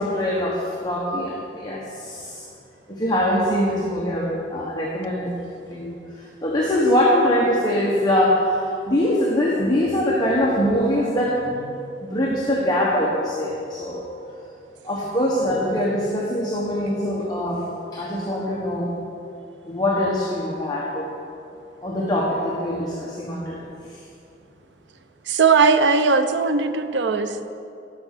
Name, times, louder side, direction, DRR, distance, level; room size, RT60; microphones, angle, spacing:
voice 1, 0.0-2.4 2.9-5.3 5.7-11.7 12.0-14.0 14.8-17.7 17.9-18.9 19.6-21.1 21.8-23.6, left 1 dB, 25° left, -4 dB, 1.3 m, -23 dB
voice 2, 25.3-27.4, right 4 dB, 80° right, 9 dB, 0.7 m, -18 dB
12.5 x 6.1 x 6.7 m, 2.6 s
head